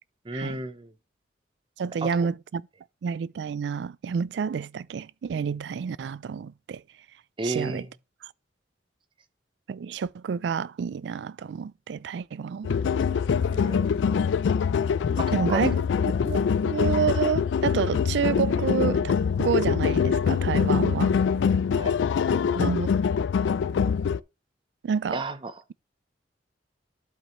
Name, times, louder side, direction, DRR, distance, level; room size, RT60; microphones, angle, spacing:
voice 1, 0.3-0.9 2.0-2.3 7.4-7.8 13.4-14.0 15.2-15.7 21.8-21.9 25.1-25.5, right 2 dB, 30° right, 0.6 m, -32 dB
voice 2, 1.8-2.6 3.0-6.8 7.4-7.9 9.7-12.8 15.3-15.8 16.3-21.2 22.5-22.9 24.8-25.2, right 6 dB, 75° right, 0.3 m, -29 dB
sound 1, 12.6-24.2, left 6 dB, 90° left, 0.3 m, -24 dB
12.0 x 5.3 x 3.1 m
head